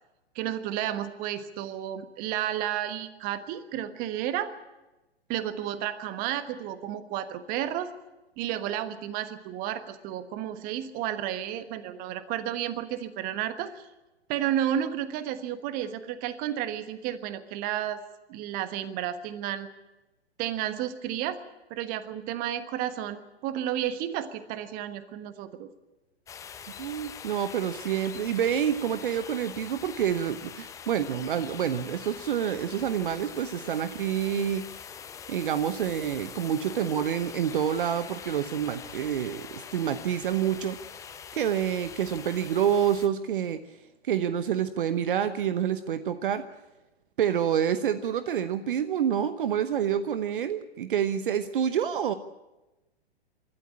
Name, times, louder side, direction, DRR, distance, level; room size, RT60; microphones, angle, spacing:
voice 1, 0.3-4.5 5.3-7.9 8.4-13.9 14.3-18.0 18.3-19.7 20.4-21.4 21.7-25.7, right 11 dB, 25° right, 12 dB, 1.3 m, -32 dB
sound 1, 26.3-43.1, left 7 dB, 10° left, 0.7 m, -44 dB
voice 2, 26.8-34.6 35.3-40.8 41.3-43.6 44.0-46.5 47.2-52.1, right 9 dB, 50° right, 12 dB, 0.9 m, -28 dB
24.5 x 13.0 x 8.7 m, 1.0 s
figure-of-eight pair, 115°, 33 cm